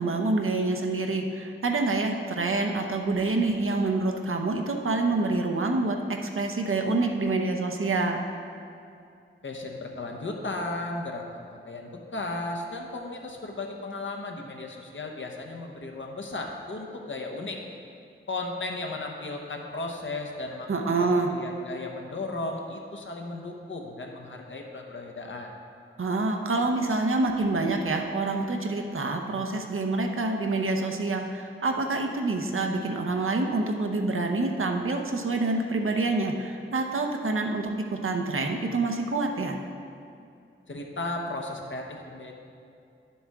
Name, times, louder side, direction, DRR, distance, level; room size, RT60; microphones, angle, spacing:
voice 1, 0.0-8.2 20.7-21.3 26.0-39.6, right 3 dB, 75° right, 3 dB, 0.8 m, -27 dB
voice 2, 9.4-17.6 18.3-25.6 40.7-42.3, left 2 dB, 65° left, 1 dB, 1.1 m, -35 dB
10.5 x 7.0 x 3.6 m, 2.5 s
wide cardioid pair, 70°, 21 cm